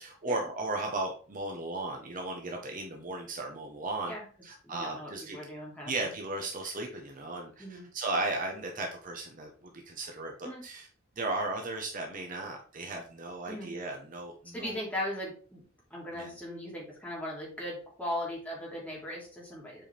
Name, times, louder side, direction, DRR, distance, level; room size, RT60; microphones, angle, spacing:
voice 1, 0.0-4.1 4.4-5.4 5.9-10.9 11.2-14.8 16.1-16.3, right 2 dB, 40° right, 1 dB, 1.1 m, -36 dB
voice 2, 4.6-6.1 7.6-7.9 10.4-10.6 13.5-13.7 14.5-15.6 15.9-19.8, left 1 dB, 10° left, -5 dB, 2.9 m, -38 dB
7.7 x 4.8 x 3.4 m, 0.40 s
head